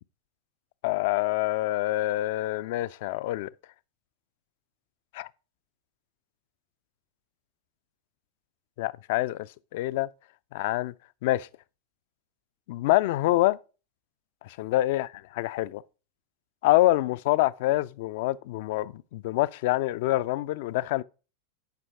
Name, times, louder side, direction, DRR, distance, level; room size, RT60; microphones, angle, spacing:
voice 1, 0.8-3.5 5.1-5.3 8.8-9.5 9.7-10.1 10.5-10.9 11.2-11.5 12.7-13.6 14.4-15.8 16.6-21.0, left 16 dB, 50° left, 0.3 m, -26 dB
8.2 x 5.5 x 4.7 m
figure-of-eight pair, 90°, 0 cm